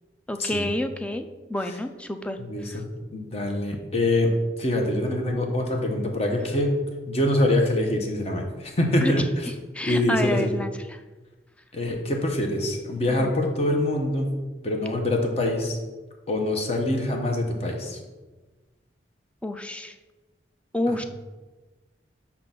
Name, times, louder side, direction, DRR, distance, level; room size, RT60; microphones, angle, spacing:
voice 1, 0.3-2.8 9.0-9.1 9.7-11.0 13.1-13.3 19.4-19.9 20.7-21.0, left 1 dB, 5° left, 7 dB, 0.3 m, -29 dB
voice 2, 2.4-2.8 3.1-4.3 4.6-6.8 7.1-9.3 9.8-10.5 11.7-14.3 14.6-15.8 16.3-18.0 20.9-21.0, left 1 dB, 35° left, 2 dB, 0.9 m, -24 dB
5.7 x 3.8 x 5.7 m, 1.2 s
head